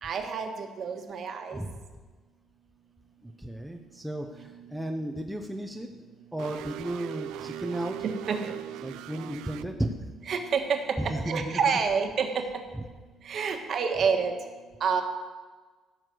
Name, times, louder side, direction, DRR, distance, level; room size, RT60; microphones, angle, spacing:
voice 1, 0.0-1.6 8.0-8.6 10.3-12.4 13.2-14.3 14.8-15.0, right 6 dB, 40° right, 5 dB, 1.4 m, -28 dB
voice 2, 3.2-5.9 6.3-8.0 8.8-9.9 11.0-11.6 12.7-12.8, right 1 dB, ahead, 2 dB, 0.6 m, -34 dB
sound 1, 6.4-9.6, right 12 dB, 85° right, 0.5 m, -39 dB
15.5 x 6.5 x 7.7 m, 1.3 s
cardioid pair, 175°, 0 cm